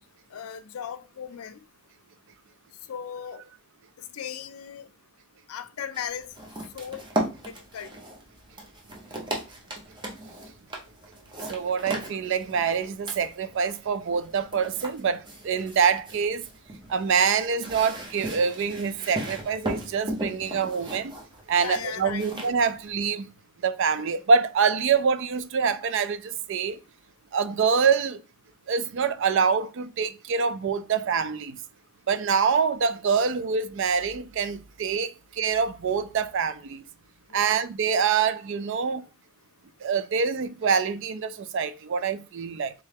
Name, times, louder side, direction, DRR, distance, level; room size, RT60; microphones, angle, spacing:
voice 1, 0.3-1.6 2.9-3.4 4.1-4.9 5.5-6.3 6.7-7.0 7.5-7.9 21.6-22.3 37.3-37.5, left 8 dB, 85° left, 0.4 m, -36 dB
sound 1, 5.9-22.9, right 1 dB, 20° right, 0.7 m, -37 dB
voice 2, 11.5-16.5 16.9-21.2 21.5-23.3 23.6-26.8 27.3-28.2 28.7-31.6 32.1-36.8 37.3-39.0 39.8-42.7, right 6 dB, 60° right, 0.4 m, -25 dB
3.6 x 3.2 x 3.4 m
head